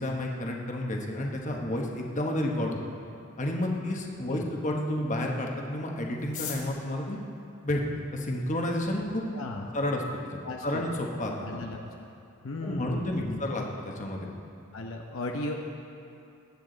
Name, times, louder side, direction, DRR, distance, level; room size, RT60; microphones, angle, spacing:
voice 1, 0.0-2.8 3.4-7.2 7.6-9.3 9.7-11.6 12.6-13.6 14.0-14.3, left 1 dB, 35° left, 0 dB, 1.2 m, -31 dB
sound 1, 6.2-8.4 9.2-9.3 9.5-9.6 9.9-10.4 10.7-10.8 11.0-11.4 11.7-11.9 12.3-12.6, left 8 dB, 85° left, 2.0 m, -42 dB
voice 2, 9.3-9.7 10.4-10.8 11.4-12.1 12.4-13.6 14.7-15.6, left 2 dB, 65° left, 1 dB, 0.8 m, -36 dB
20.0 x 8.5 x 4.0 m, 2.6 s
head